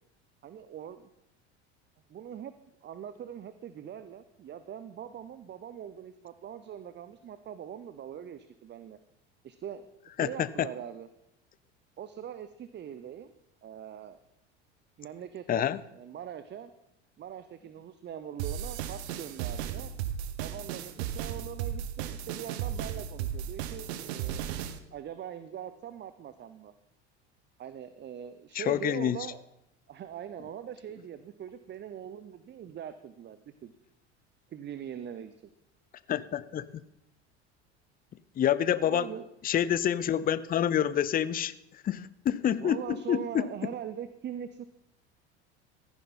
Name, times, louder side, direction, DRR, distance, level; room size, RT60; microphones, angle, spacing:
voice 1, 0.4-1.0 2.1-2.5 2.8-9.0 9.4-9.9 10.2-11.1 12.0-13.3 13.6-14.2 15.0-16.7 17.2-19.9 20.4-24.5 24.9-26.7 27.6-29.4 29.9-33.7 34.5-35.5 38.7-39.3 42.6-44.6, right 9 dB, 30° right, 12 dB, 0.7 m, -42 dB
voice 2, 10.2-10.7 15.5-15.8 28.5-29.2 36.1-36.7 38.4-39.1 39.4-41.5 41.8-43.4, left 10 dB, 25° left, 17 dB, 0.6 m, -27 dB
sound 1, 18.4-24.8, right 9 dB, 70° right, 1.1 m, -35 dB
14.5 x 10.5 x 4.2 m, 0.85 s
hypercardioid pair, 80°, 34 cm